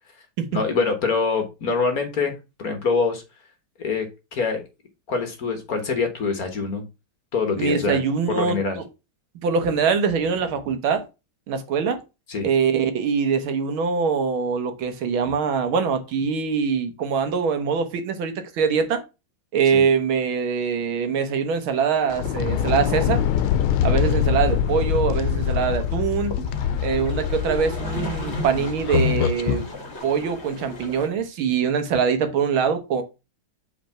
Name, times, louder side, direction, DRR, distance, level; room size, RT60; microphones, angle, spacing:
voice 1, 0.5-2.3 2.6-3.2 3.8-4.6 5.1-6.9 7.3-8.0 8.3-8.8 12.3-12.5 19.7-19.8 24.0-24.2, left 4 dB, 50° left, 1.6 m, -25 dB
voice 2, 7.6-8.8 9.4-11.1 11.5-12.0 12.4-19.0 19.5-23.2 23.8-26.3 26.8-29.7 30.0-33.0, right 6 dB, 75° right, 1.9 m, -23 dB
sound 1, 21.8-31.1, left 2 dB, 30° left, 2.1 m, -37 dB
sound 2, 22.1-29.7, left 9 dB, 90° left, 1.5 m, -24 dB
5.2 x 4.4 x 5.6 m
omnidirectional pair, 2.3 m